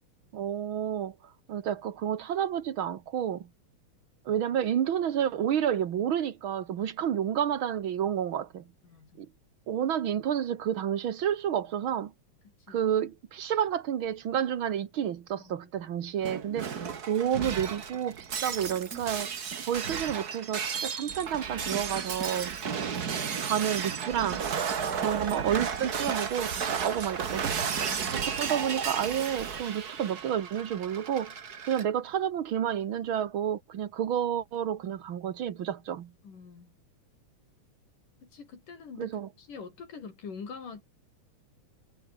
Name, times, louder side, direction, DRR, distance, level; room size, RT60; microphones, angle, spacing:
voice 1, 0.3-1.1 1.5-3.5 4.2-8.6 9.2-9.3 9.7-12.1 12.7-16.7 17.1-19.3 19.7-22.6 23.4-24.5 25.0-27.5 28.1-31.3 31.6-36.1 39.0-39.3, right 9 dB, 55° right, 1.5 m, -30 dB
voice 2, 8.8-9.2 12.7-12.8 15.3-15.9 24.8-25.2 27.9-28.3 36.2-36.7 38.2-40.8, left 5 dB, 80° left, 6.1 m, -45 dB
Shatter, 16.2-31.8, right 6 dB, 40° right, 1.5 m, -33 dB
omnidirectional pair, 3.7 m